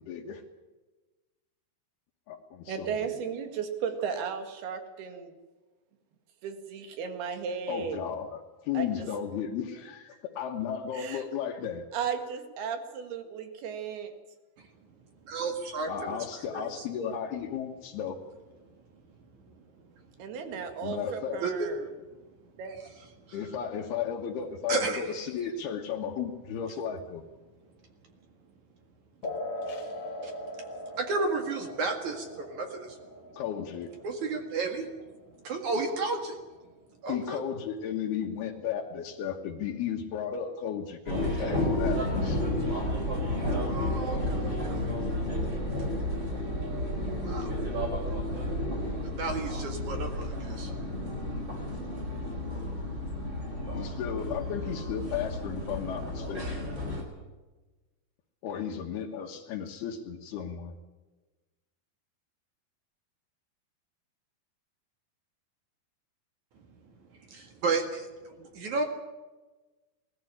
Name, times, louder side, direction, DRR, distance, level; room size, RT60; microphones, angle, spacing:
voice 1, 0.0-0.4 2.3-3.3 7.7-11.9 15.9-18.2 20.8-21.4 23.3-27.2 33.3-33.9 37.1-42.4 53.7-56.6 58.4-60.7, left 8 dB, 80° left, -1 dB, 3.4 m, -34 dB
voice 2, 2.7-5.3 6.4-8.0 8.7-9.1 11.0-11.2 11.9-14.1 20.2-21.8 22.6-22.8, right 6 dB, 75° right, 7 dB, 3.9 m, -35 dB
voice 3, 15.3-15.9 16.5-16.7 21.4-21.7 23.2-23.4 24.7-25.1 30.2-30.3 30.9-33.0 34.0-34.9 35.4-36.4 37.0-37.4 43.6-44.9 47.2-47.5 49.0-50.7 66.9-67.0 67.3-68.9, right 3 dB, 55° right, 4 dB, 2.9 m, -32 dB
sound 1, 29.2-36.3, left 1 dB, 45° left, 2.1 m, -41 dB
sound 2, 41.1-57.0, left 1 dB, 30° right, 5.2 m, -32 dB
20.0 x 14.5 x 10.0 m, 1.2 s
omnidirectional pair, 4.7 m